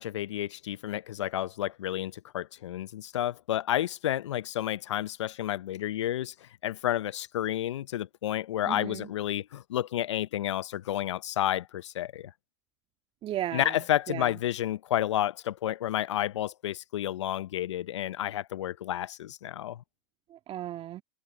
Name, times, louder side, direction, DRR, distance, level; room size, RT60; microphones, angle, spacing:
voice 1, 0.0-6.3 6.6-12.3 13.5-19.8, left 12 dB, 80° left, 0.7 m, -31 dB
voice 2, 8.6-9.1 13.2-14.4 20.3-21.0, right 12 dB, 40° right, 2.4 m, -36 dB
hypercardioid pair, 95°, 15 cm